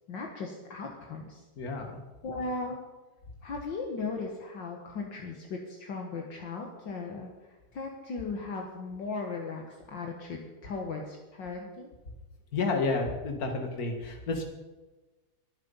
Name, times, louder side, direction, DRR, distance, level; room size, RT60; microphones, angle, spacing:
voice 1, 0.1-1.4 2.2-2.8 3.4-7.3 7.7-9.6 9.9-11.9, left 4 dB, 65° left, 1 dB, 2.1 m, -37 dB
voice 2, 1.6-2.0 12.5-14.4, left 3 dB, 45° left, 4 dB, 2.3 m, -30 dB
22.0 x 7.6 x 5.5 m, 1.2 s
omnidirectional pair, 2.2 m